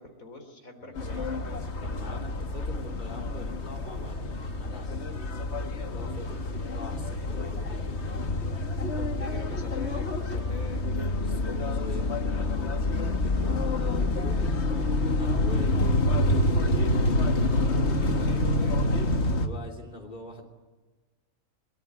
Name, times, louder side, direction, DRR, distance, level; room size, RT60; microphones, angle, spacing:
voice 1, 0.0-1.7 6.5-6.8 7.4-7.5 8.9-11.0 17.5-18.9, left 2 dB, 90° left, 5 dB, 4.2 m, -44 dB
voice 2, 0.8-1.3 1.8-8.3 11.2-15.8 19.1-20.4, left 1 dB, 35° left, 1 dB, 3.4 m, -44 dB
sound 1, 1.0-19.5, left 2 dB, 55° left, 1.8 m, -27 dB
22.5 x 22.5 x 9.5 m, 1.3 s
omnidirectional pair, 1.4 m